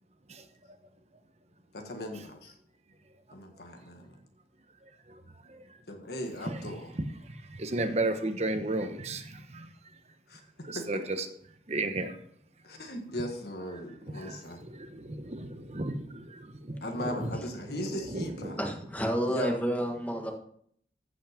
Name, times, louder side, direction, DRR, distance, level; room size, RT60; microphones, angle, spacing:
voice 1, 1.7-2.6 3.3-4.2 5.9-6.9 10.3-10.4 10.7-10.9 11.2-11.3 12.6-14.6 16.8-18.6 19.3-19.6, equal, 60° left, 1.7 m, -38 dB
voice 2, 4.8-5.6 6.5-6.7 7.0-9.7 10.6-11.3 11.7-12.2 14.0-17.4 17.7-18.6, right 2 dB, 35° right, 1.0 m, -34 dB
voice 3, 18.6-20.3, equal, 10° left, 1.6 m, -30 dB
15.0 x 5.9 x 5.1 m
head